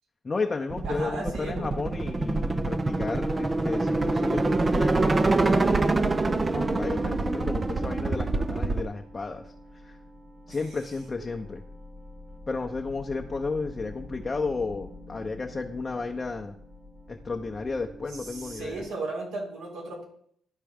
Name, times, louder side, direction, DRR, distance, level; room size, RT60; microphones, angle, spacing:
voice 1, 0.2-6.0 6.2-9.5 9.8-10.0 10.5-11.6 12.5-16.5 17.1-18.8, left 4 dB, 30° left, 3 dB, 0.7 m, -33 dB
sound 1, 0.7-8.9, right 2 dB, 25° right, 0.4 m, -25 dB
voice 2, 0.8-1.7 10.5-10.8 18.1-20.0, right 2 dB, 85° right, -4 dB, 3.7 m, -36 dB
sound 2, 6.6-18.9, left 1 dB, 10° right, 1.1 m, -46 dB
12.5 x 4.5 x 3.5 m, 0.65 s
cardioid pair, 90°, 0 cm